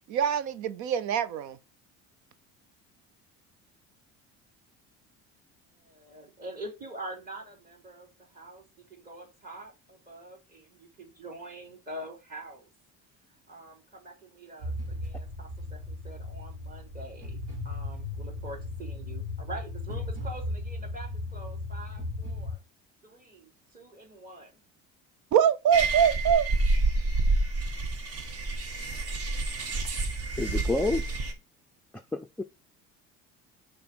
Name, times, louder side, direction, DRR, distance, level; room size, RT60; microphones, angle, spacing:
voice 1, 0.1-1.6 25.3-26.5, right 8 dB, 65° right, 0.7 m, -24 dB
voice 2, 5.8-12.7 13.5-22.6 23.0-24.6, right 1 dB, 30° right, 3.5 m, -45 dB
sound 1, 14.6-22.5, left 2 dB, 85° right, 3.1 m, -36 dB
sound 2, 25.7-31.3, right 2 dB, 50° right, 1.7 m, -28 dB
voice 3, 30.4-31.2 32.1-32.4, left 2 dB, 5° left, 0.4 m, -29 dB
5.8 x 4.1 x 6.1 m
cardioid pair, 110°, 31 cm